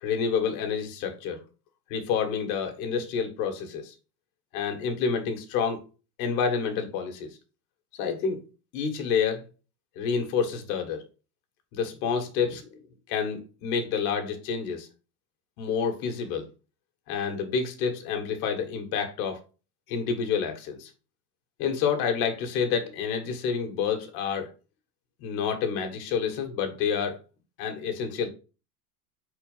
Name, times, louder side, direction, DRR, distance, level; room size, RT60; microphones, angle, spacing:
voice 1, 0.0-1.4 1.9-3.9 4.5-5.8 6.2-7.4 7.9-8.4 8.7-9.5 10.0-11.0 11.7-12.8 13.1-14.9 15.6-16.5 17.1-19.4 19.9-20.9 21.6-24.5 25.2-27.2 27.6-28.3, left 6 dB, 65° left, 1.8 m, -28 dB
4.5 x 4.4 x 5.6 m
supercardioid pair, 120°, 46 cm